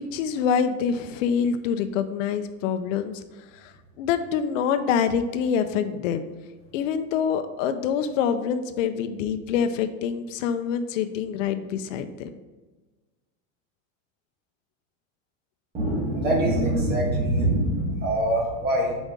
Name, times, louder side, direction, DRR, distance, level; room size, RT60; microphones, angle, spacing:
voice 1, 0.0-3.2 3.5-6.3 6.7-12.3, left 7 dB, 75° left, 9 dB, 0.8 m, -26 dB
voice 2, 15.7-19.0, right 1 dB, 25° right, -2 dB, 1.9 m, -23 dB
6.7 x 5.1 x 3.7 m, 1.3 s
supercardioid pair, 170°, 39 cm